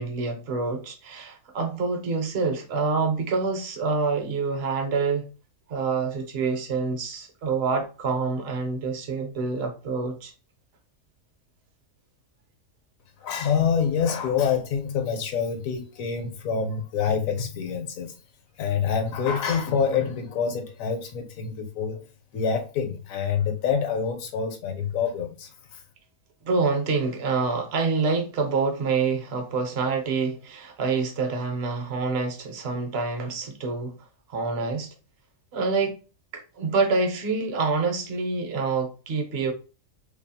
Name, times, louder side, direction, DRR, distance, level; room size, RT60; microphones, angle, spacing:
voice 1, 0.0-5.3 5.7-10.3 26.4-33.9 34.3-34.9 35.5-36.0 36.3-39.5, right 4 dB, 55° right, 0.8 m, -26 dB
voice 2, 13.2-18.1 18.6-22.0 22.3-25.8, left 6 dB, 75° left, 1.0 m, -26 dB
2.6 x 2.3 x 2.7 m
omnidirectional pair, 1.5 m